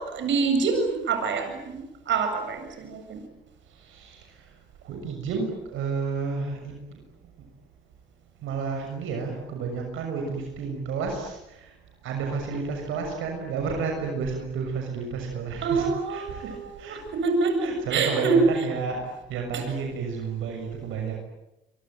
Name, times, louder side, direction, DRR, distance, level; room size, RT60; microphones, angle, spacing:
voice 1, 0.1-3.2 15.6-16.6 16.9-18.3, right 4 dB, 70° right, 5 dB, 7.8 m, -26 dB
voice 2, 3.8-4.3 4.8-7.0 8.4-11.7 12.0-17.0 17.6-21.2, right 5 dB, 90° right, 2 dB, 6.7 m, -31 dB
26.0 x 25.0 x 9.3 m, 0.94 s
cardioid pair, 90°, 20 cm